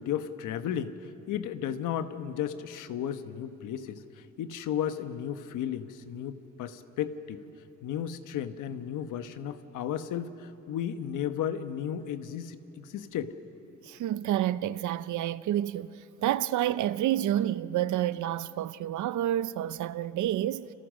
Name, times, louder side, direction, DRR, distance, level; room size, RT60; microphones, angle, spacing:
voice 1, 0.0-7.4 7.8-13.3, left 9 dB, 90° left, 1.3 m, -34 dB
voice 2, 13.9-20.7, right 12 dB, 75° right, 0.7 m, -29 dB
30.0 x 27.0 x 6.4 m
cardioid pair, 140°, 30 cm